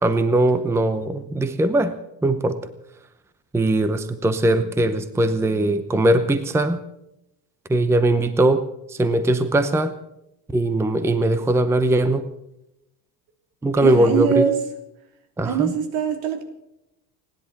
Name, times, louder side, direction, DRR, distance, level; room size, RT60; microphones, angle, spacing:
voice 1, 0.0-1.9 2.2-2.7 3.5-6.8 7.7-9.9 10.5-12.3 13.6-14.4 15.4-15.7, right 1 dB, 5° right, 11 dB, 0.7 m, -20 dB
voice 2, 13.8-14.6 15.4-16.4, right 7 dB, 70° right, 6 dB, 3.2 m, -22 dB
29.5 x 10.5 x 4.2 m, 0.86 s
cardioid pair, 125°, 48 cm